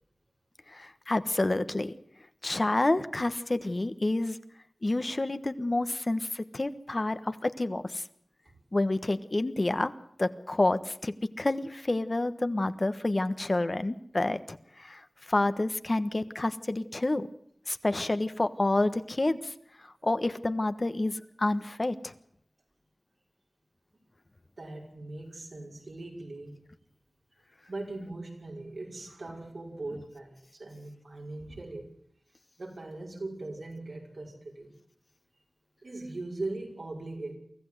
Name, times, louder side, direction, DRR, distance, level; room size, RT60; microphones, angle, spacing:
voice 1, 0.7-1.9 2.4-4.4 4.8-8.0 8.7-9.9 10.2-17.3 17.7-19.5 19.8-22.1, left 2 dB, 45° left, 11 dB, 1.3 m, -29 dB
voice 2, 24.6-26.6 27.7-31.9 32.6-34.7 35.8-37.4, right 2 dB, 80° right, -1 dB, 5.6 m, -40 dB
24.5 x 14.5 x 8.0 m, 0.68 s
wide cardioid pair, 45°, 0 cm